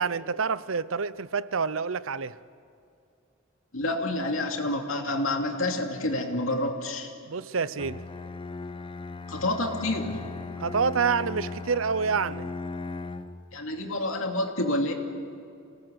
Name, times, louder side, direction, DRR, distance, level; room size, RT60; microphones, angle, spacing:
voice 1, 0.0-2.4 7.3-8.1 10.6-12.5, right 5 dB, 70° right, 0.7 m, -27 dB
voice 2, 3.7-7.1 9.3-10.3 13.5-14.9, left 1 dB, 75° left, 2.7 m, -28 dB
Bowed string instrument, 7.8-13.5, left 3 dB, 25° left, 0.7 m, -37 dB
27.0 x 18.5 x 8.0 m
head